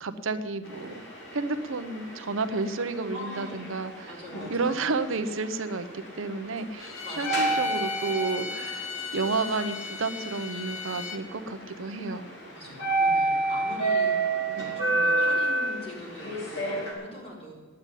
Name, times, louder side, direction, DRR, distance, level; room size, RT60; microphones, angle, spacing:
voice 1, 0.0-1.0 1.3-4.1 4.5-12.3 14.5-14.9, right 3 dB, 75° right, 10 dB, 0.7 m, -31 dB
sound 1, 0.6-16.9, right 2 dB, 60° left, 2.8 m, -31 dB
voice 2, 3.1-3.6 4.0-4.8 7.0-7.6 11.6-11.7 12.5-14.2 14.7-17.5, left 1 dB, 30° left, -4 dB, 3.8 m, -42 dB
Bowed string instrument, 6.8-11.2, left 5 dB, 85° left, 1.3 m, -37 dB
9.8 x 8.7 x 9.8 m, 1.4 s
head